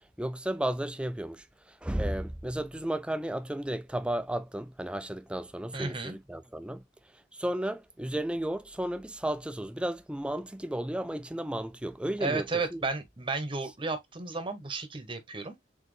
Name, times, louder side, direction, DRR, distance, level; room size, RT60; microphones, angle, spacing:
voice 1, 0.2-6.8 7.3-12.5 12.7-12.8, right 1 dB, 5° right, 0.4 m, -33 dB
voice 2, 5.7-6.2 12.2-15.6, right 3 dB, 30° right, 1.0 m, -33 dB
4.3 x 3.8 x 3.1 m
head